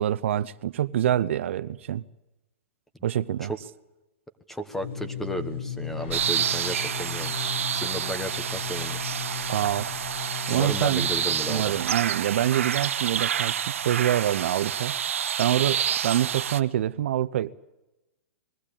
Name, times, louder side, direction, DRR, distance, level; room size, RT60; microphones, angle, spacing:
voice 1, 0.0-2.0 3.0-3.5 9.5-9.9 10.5-11.1 11.5-13.5 13.8-14.9 15.4-17.5, right 11 dB, 65° right, 0.6 m, -25 dB
voice 2, 4.5-9.0 10.5-11.7, equal, 5° left, 1.2 m, -34 dB
sound 1, 4.7-11.9, left 7 dB, 75° left, 5.8 m, -36 dB
sound 2, 6.0-16.1, left 4 dB, 55° left, 7.5 m, -50 dB
sound 3, 6.1-16.6, right 9 dB, 80° right, 1.0 m, -28 dB
21.0 x 15.0 x 8.6 m
hypercardioid pair, 145°, 7 cm